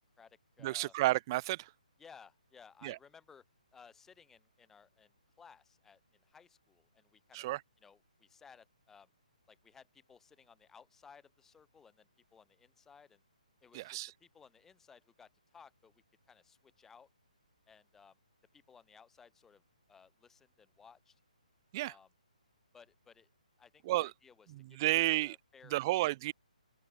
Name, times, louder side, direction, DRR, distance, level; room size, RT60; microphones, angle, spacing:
voice 1, 0.0-0.9 2.0-3.4 3.7-7.5 7.8-9.1 9.5-13.2 13.6-17.1 17.7-18.2 18.5-19.6 19.9-21.2 21.8-22.1 22.7-23.3 23.6-26.3, left 6 dB, 10° left, 2.2 m, -60 dB
voice 2, 0.6-1.7 2.8-3.0 7.3-7.6 13.7-14.1 21.7-21.9 23.9-24.1 24.5-25.4 25.7-26.3, right 18 dB, 30° right, 0.4 m, -31 dB
open air
figure-of-eight pair, 145°, 4 cm